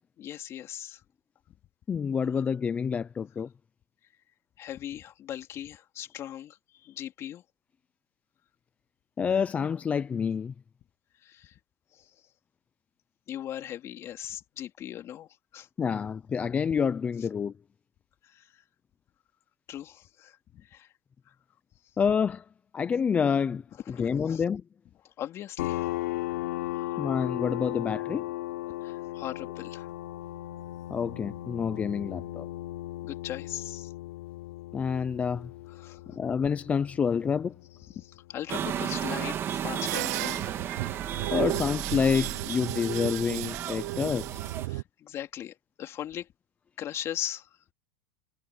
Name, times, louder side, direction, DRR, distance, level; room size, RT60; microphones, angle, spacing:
voice 1, 0.2-1.0 4.6-6.6 6.8-7.4 11.2-11.6 11.9-12.1 13.3-15.7 18.2-18.6 19.7-20.9 21.3-21.4 23.8-24.4 25.0-26.3 26.7-27.1 28.7-29.9 33.0-33.9 35.7-36.2 37.9-40.6 41.5-41.6 44.7-46.3 46.8-47.5, left 11 dB, 30° left, 3.4 m, -39 dB
voice 2, 1.9-3.5 9.2-10.5 15.8-17.5 22.0-22.4 22.7-24.6 27.0-28.3 30.9-32.5 34.7-35.5 36.2-37.5 41.3-44.4, left 6 dB, 15° left, 0.5 m, -28 dB
sound 1, 25.6-38.9, left 16 dB, 80° left, 3.7 m, -37 dB
Construction Site, 38.5-44.7, right 9 dB, 30° right, 2.6 m, -34 dB
sound 2, 39.8-44.8, right 20 dB, 70° right, 0.6 m, -34 dB
supercardioid pair, 150°, 9 cm